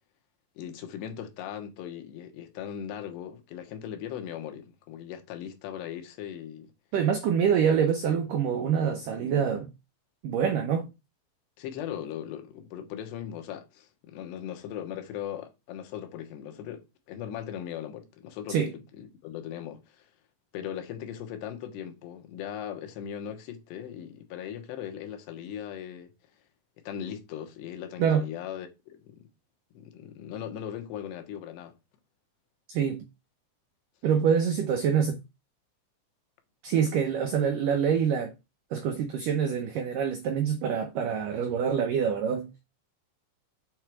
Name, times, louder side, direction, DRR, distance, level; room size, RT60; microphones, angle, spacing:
voice 1, 0.6-6.7 11.6-20.1 20.5-26.1 26.8-29.3 29.7-31.8, left 9 dB, 75° left, 3.2 m, -39 dB
voice 2, 6.9-9.7 10.2-10.9 18.5-18.7 28.0-28.3 32.7-33.1 34.0-35.2 36.6-38.3 38.7-42.5, right 7 dB, 85° right, 1.8 m, -26 dB
7.9 x 4.5 x 4.9 m
omnidirectional pair, 5.1 m